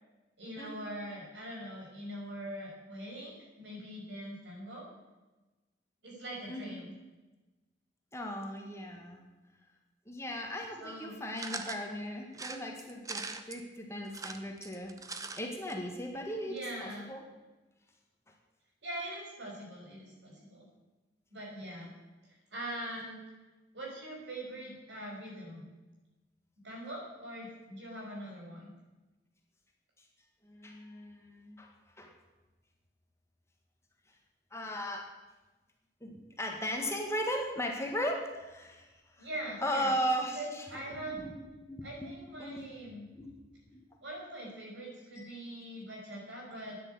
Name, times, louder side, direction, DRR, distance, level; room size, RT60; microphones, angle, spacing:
voice 1, 0.4-4.8 6.0-6.9 10.8-11.2 16.4-17.1 18.8-20.7 21.3-21.9 22.5-23.2 23.7-25.7 26.6-28.7 39.2-39.9 40.3-41.2 41.8-43.0 44.0-46.8, right 1 dB, 85° right, -2 dB, 5.8 m, -42 dB
voice 2, 6.5-6.8 8.1-9.2 10.1-15.0 15.4-17.2 30.4-31.7 32.0-32.1 34.5-35.1 36.0-38.9 39.2-39.3 39.6-42.1 42.4-42.7 43.1-43.3 43.7-43.8 45.2-45.3, equal, 15° left, 1 dB, 1.7 m, -37 dB
sound 1, 11.4-11.8 12.3-13.6 14.1-15.4 15.7-15.8 16.0-16.1, right 4 dB, 20° right, 0.8 m, -41 dB
10.0 x 9.8 x 8.3 m, 1.1 s
head